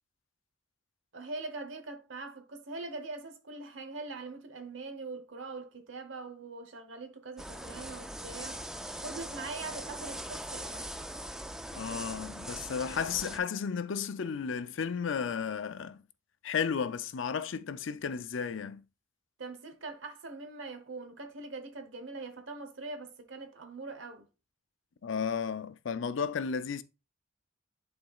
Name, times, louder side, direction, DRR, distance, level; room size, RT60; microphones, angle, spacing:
voice 1, 1.1-8.6 9.0-10.9 19.4-24.3, right 3 dB, 80° right, 0.9 m, -42 dB
sound 1, 7.4-13.4, right 1 dB, 5° right, 0.3 m, -41 dB
voice 2, 11.7-16.0 16.4-18.8 25.0-26.8, left 6 dB, 80° left, 0.5 m, -33 dB
10.5 x 4.1 x 2.4 m
head